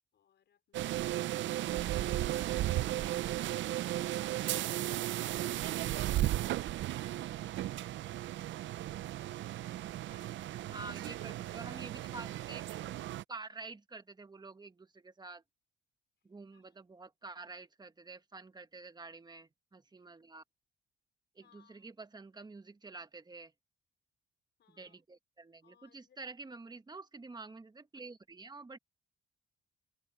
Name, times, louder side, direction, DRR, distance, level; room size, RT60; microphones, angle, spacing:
voice 1, 0.1-4.1 4.5-7.8 9.3-10.8 16.5-16.8 21.4-22.0 24.6-25.0 25.6-26.3, left 9 dB, 60° left, 5.0 m, -67 dB
sound 1, 0.7-13.2, right 14 dB, 70° right, 0.5 m, -35 dB
voice 2, 10.7-13.0 13.3-15.4 16.2-20.4 21.3-23.5 24.7-28.8, right 3 dB, 20° right, 1.4 m, -48 dB
cardioid pair, 90°, 20 cm